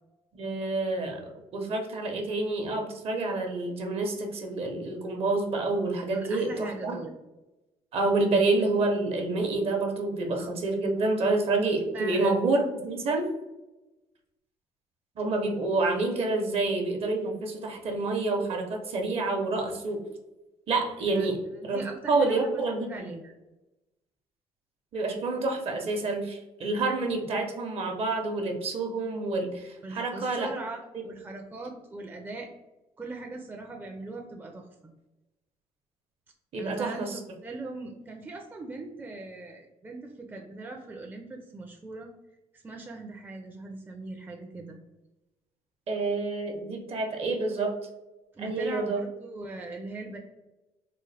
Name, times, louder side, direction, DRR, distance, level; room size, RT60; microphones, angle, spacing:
voice 1, 0.3-1.2 1.5-7.0 7.9-13.3 15.2-20.0 20.7-21.4 21.6-21.8 22.1-23.1 24.9-30.5 30.9-31.0 36.5-37.1 45.9-47.7 48.4-49.0, right 3 dB, 55° right, 3 dB, 0.8 m, -28 dB
voice 2, 6.1-7.1 11.9-12.4 21.1-21.3 21.6-23.3 29.8-32.5 33.0-34.9 36.6-42.1 42.5-44.8 48.3-50.2, right 3 dB, 15° right, 2 dB, 0.5 m, -40 dB
3.7 x 2.1 x 3.3 m, 1.0 s
cardioid pair, 90°, 12 cm